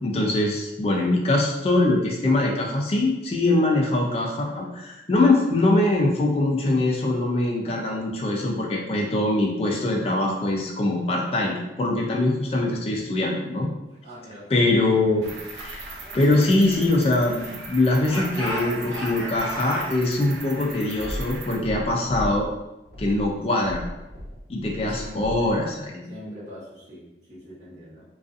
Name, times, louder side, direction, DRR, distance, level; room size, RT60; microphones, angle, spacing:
voice 1, 0.0-13.7 14.5-15.8 16.1-22.5 23.0-23.8 24.5-26.1, left 2 dB, 35° left, -2 dB, 0.3 m, -23 dB
voice 2, 14.0-14.5 24.9-25.5 26.1-28.0, equal, 40° right, -11 dB, 0.9 m, -41 dB
Cricket, 15.2-21.6, right 3 dB, 75° right, 0.4 m, -39 dB
Speech / Shout, 16.0-17.6 18.0-19.9, equal, 15° right, 1.0 m, -34 dB
sound 1, 20.9-22.5 22.8-25.6, equal, 65° left, 0.6 m, -36 dB
2.5 x 2.3 x 2.4 m, 0.96 s
head